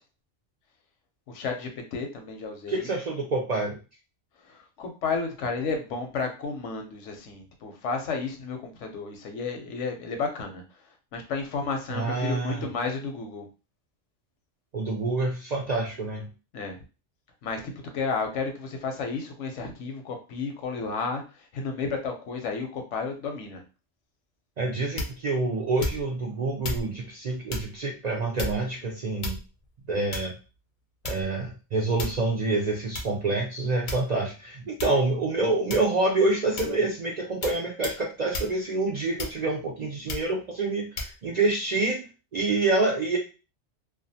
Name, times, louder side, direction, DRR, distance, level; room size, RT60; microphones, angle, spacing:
voice 1, 1.3-2.9 4.5-10.6 11.1-13.5 16.5-16.8 17.4-21.2 21.5-23.6, left 4 dB, 85° left, 4 dB, 1.0 m, -32 dB
voice 2, 2.7-3.8 11.9-12.7 14.7-16.3 24.6-29.4 29.9-30.3 31.0-42.0 42.3-43.2, right 3 dB, 60° right, -1 dB, 0.4 m, -27 dB
sound 1, 25.0-25.3 25.8-26.2 26.6-26.9 27.5-27.7 28.4-28.8 29.2-29.6 30.1-30.4 31.0-31.4 32.0-32.3 32.9-33.1 33.9-34.3 34.8-35.0 35.7-36.0 36.6-36.8 37.4-37.6 37.8-38.0 38.3-38.5 39.2-39.6 40.1-40.3 41.0-41.1, left 2 dB, 55° left, 0.6 m, -33 dB
2.4 x 2.4 x 2.6 m, 0.32 s
omnidirectional pair, 1.2 m